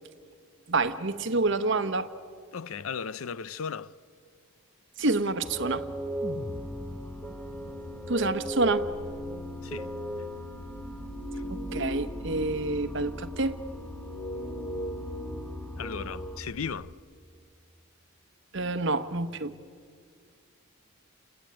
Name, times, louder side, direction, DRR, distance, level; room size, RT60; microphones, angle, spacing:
voice 1, 0.7-2.1 5.0-5.8 8.1-8.9 11.5-13.6 18.5-19.5, right 3 dB, 60° right, 1.1 m, -28 dB
voice 2, 2.5-3.9 9.6-9.9 15.8-16.9, left 6 dB, 80° left, 0.6 m, -36 dB
sound 1, 5.4-16.4, equal, 10° left, 1.4 m, -37 dB
sound 2, 6.2-10.6, left 2 dB, 30° left, 0.6 m, -44 dB
sound 3, 6.8-16.9, left 2 dB, 25° right, 2.5 m, -47 dB
29.0 x 21.0 x 8.7 m
head